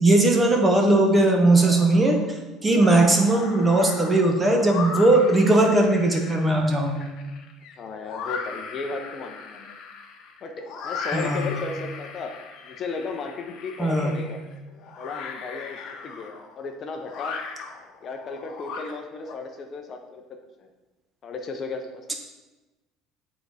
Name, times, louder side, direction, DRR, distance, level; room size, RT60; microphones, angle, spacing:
voice 1, 0.0-7.1 11.1-11.5 13.8-14.2, right 2 dB, 15° right, 2 dB, 0.9 m, -19 dB
sound 1, 1.6-2.2 2.6-19.3, left 5 dB, 55° left, 1.0 m, -38 dB
voice 2, 7.8-9.8 10.4-12.3 12.6-14.4 15.0-17.4 18.0-20.2 20.6-20.7 21.2-22.0, left 4 dB, 35° left, 4 dB, 0.6 m, -35 dB
7.6 x 4.0 x 4.8 m, 1.1 s
cardioid pair, 145°, 0 cm